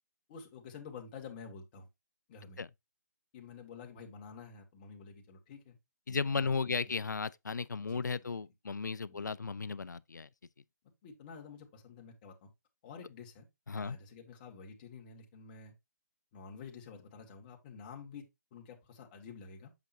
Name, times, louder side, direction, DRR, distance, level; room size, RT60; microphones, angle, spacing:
voice 1, 0.3-1.9 2.3-2.6 3.3-5.8 6.1-6.9 7.8-8.3 9.1-9.3 11.0-12.5 12.8-13.5 13.7-15.7 16.3-19.7, left 5 dB, 30° left, 2.0 m, -50 dB
voice 2, 6.1-10.3 13.7-14.0, left 5 dB, 85° left, 0.5 m, -35 dB
8.1 x 5.9 x 2.7 m
figure-of-eight pair, 145°, 9 cm